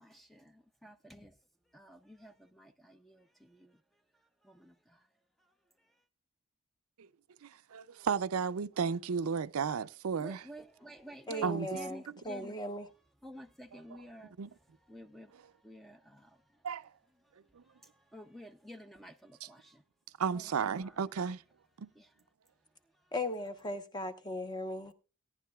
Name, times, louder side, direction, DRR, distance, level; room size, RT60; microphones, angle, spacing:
voice 1, 0.0-1.4 1.7-3.8 4.4-5.1 5.4-5.5 5.8-6.0 10.2-12.6 13.2-16.6 17.2-17.3 17.6-19.8 20.3-21.0 21.9-22.2, equal, ahead, 0.5 m, -52 dB
voice 2, 7.4-10.4 11.4-11.7 14.4-14.5 16.6-16.9 17.5-17.6 20.2-21.4 21.8-21.9, right 6 dB, 75° right, 0.5 m, -33 dB
voice 3, 11.3-12.9 23.1-24.9, left 1 dB, 20° left, 1.0 m, -38 dB
17.5 x 10.5 x 2.3 m
head